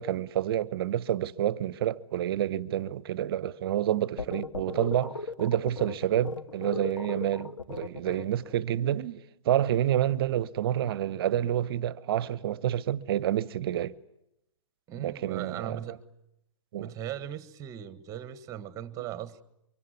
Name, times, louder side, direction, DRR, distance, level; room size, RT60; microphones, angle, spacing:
voice 1, 0.0-13.9 15.0-15.8 16.7-16.9, right 11 dB, 50° right, 1.0 m, -28 dB
sound 1, 4.2-8.6, left 4 dB, 80° left, 1.5 m, -37 dB
voice 2, 14.9-16.0 16.8-19.4, right 11 dB, 20° right, 1.5 m, -38 dB
25.0 x 24.0 x 9.6 m
figure-of-eight pair, 125°, 16 cm